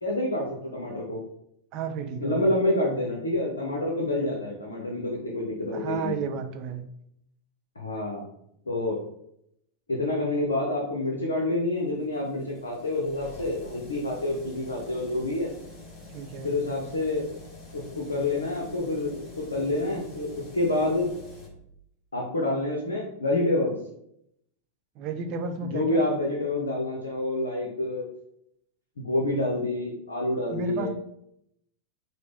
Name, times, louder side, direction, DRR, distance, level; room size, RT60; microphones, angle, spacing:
voice 1, 0.0-1.2 2.2-6.3 7.8-8.2 8.7-9.0 9.9-15.5 16.4-17.3 17.7-21.1 22.1-23.7 25.6-28.0 29.0-30.9, left 2 dB, 75° left, -1 dB, 0.8 m, -28 dB
voice 2, 1.7-2.4 4.0-4.1 5.7-6.8 16.1-16.5 25.0-26.0 30.5-30.9, right 5 dB, 40° right, 6 dB, 0.5 m, -32 dB
sound 1, 11.1-21.5, left 2 dB, 30° left, 1.5 m, -47 dB
4.9 x 2.2 x 3.6 m, 0.75 s
figure-of-eight pair, 90°, 0 cm